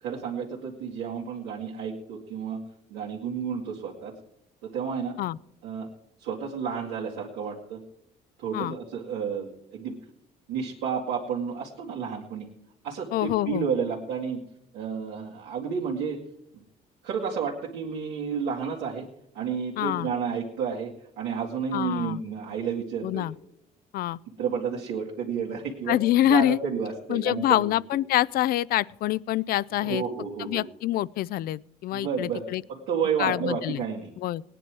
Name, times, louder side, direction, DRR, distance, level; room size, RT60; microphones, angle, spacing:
voice 1, 0.0-2.6 2.9-4.1 4.6-5.2 5.6-5.9 6.2-7.8 8.4-10.0 10.5-12.5 12.8-14.4 14.7-16.2 16.5-16.6 17.0-19.1 19.3-23.3 24.4-26.0 26.2-27.7 29.8-30.7 31.9-32.4 32.7-34.1, right 6 dB, 90° right, -5 dB, 2.1 m, -31 dB
voice 2, 13.1-13.7 19.8-20.1 21.7-22.2 23.0-23.4 23.9-24.2 25.9-26.6 27.1-30.0 30.4-32.6 33.2-33.8 34.2-34.4, left 14 dB, 60° left, 22 dB, 0.4 m, -26 dB
18.0 x 9.9 x 4.7 m, 0.78 s
cardioid pair, 110°, 17 cm